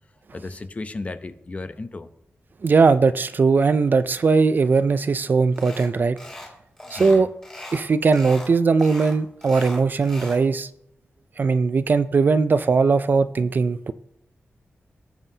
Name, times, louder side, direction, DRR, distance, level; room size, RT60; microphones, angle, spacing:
voice 1, 0.3-2.1 7.0-7.3, left 3 dB, 30° left, 0.6 m, -34 dB
voice 2, 2.6-6.2 6.9-7.3 7.7-10.7 11.4-13.9, right 4 dB, 45° right, 0.4 m, -19 dB
sound 1, 5.6-5.9 6.2-6.5 6.8-7.8 8.1-8.5 8.8-10.4, left 1 dB, 10° left, 3.1 m, -39 dB
17.5 x 7.3 x 2.8 m
wide cardioid pair, 155°, 5 cm